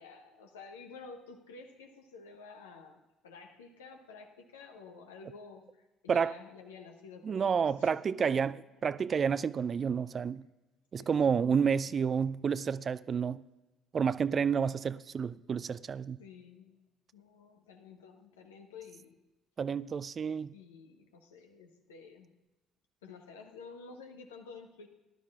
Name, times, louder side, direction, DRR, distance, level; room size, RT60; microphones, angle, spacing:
voice 1, 0.0-8.4 11.0-11.5 11.8-11.9 16.2-16.8 17.1-19.2 20.5-22.3 23.0-24.9, left 4 dB, 75° left, 4 dB, 1.1 m, -51 dB
voice 2, 7.2-8.5 8.8-10.4 10.9-13.4 13.9-16.2 19.6-20.5, right 6 dB, 40° right, 17 dB, 0.4 m, -30 dB
18.0 x 12.0 x 2.4 m, 1.1 s
figure-of-eight pair, 50°, 0 cm